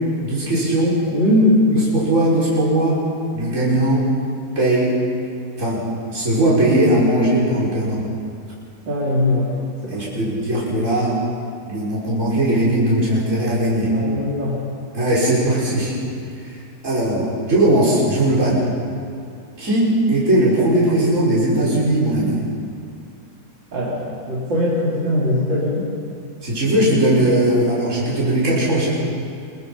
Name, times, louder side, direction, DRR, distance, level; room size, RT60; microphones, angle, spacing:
voice 1, 0.2-1.0 1.9-3.0 3.3-4.1 4.6-5.0 5.6-5.8 6.1-8.0 9.9-11.2 11.7-13.9 14.9-15.9 16.4-16.5 16.8-18.6 19.6-22.4 26.4-28.9, right 1 dB, 40° right, -8 dB, 5.9 m, -18 dB
voice 2, 1.1-1.7 8.9-9.5 9.8-10.2 13.9-14.6 23.7-25.9, left 1 dB, 85° right, -7 dB, 4.1 m, -20 dB
26.5 x 22.5 x 5.5 m, 2.3 s
omnidirectional pair, 1.9 m